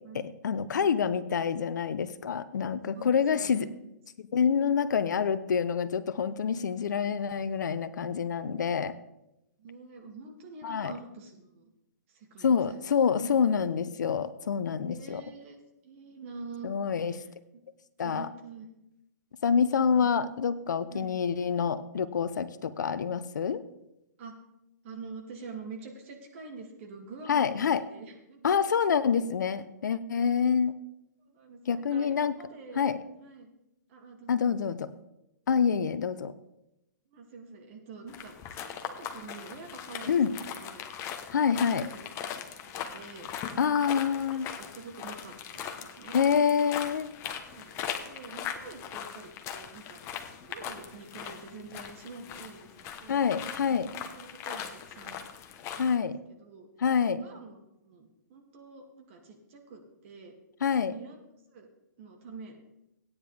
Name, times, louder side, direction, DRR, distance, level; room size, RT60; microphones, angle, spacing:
voice 1, 0.1-3.7 4.2-8.9 10.6-10.9 12.4-15.2 16.6-17.1 18.0-18.3 19.4-23.6 27.3-27.8 28.4-30.7 31.7-32.3 32.8-33.0 34.3-34.9 35.5-36.3 40.1-40.3 41.3-41.9 43.6-44.5 46.1-47.1 53.1-53.9 55.8-56.2 56.8-57.2 60.6-60.9, left 7 dB, 75° left, 14 dB, 0.8 m, -27 dB
voice 2, 2.9-3.7 9.6-11.7 12.1-12.8 14.9-15.6 15.8-16.8 17.1-17.3 18.0-18.7 19.9-20.1 20.9-21.1 24.2-24.4 24.8-27.6 27.9-28.6 31.3-32.9 33.2-33.5 33.9-34.5 37.1-38.4 38.6-40.2 40.5-40.8 41.4-42.0 42.7-43.3 43.7-46.2 47.5-47.8 48.0-50.0 50.4-53.3 53.7-55.2 55.7-56.7 57.2-60.3 60.9-61.2 61.5-61.7 62.0-62.6, right 4 dB, 45° right, 2 dB, 2.4 m, -46 dB
sound 1, 38.1-56.0, left 8 dB, 25° left, 1.1 m, -40 dB
16.0 x 9.6 x 3.4 m, 0.88 s
hypercardioid pair, 140°, 10 cm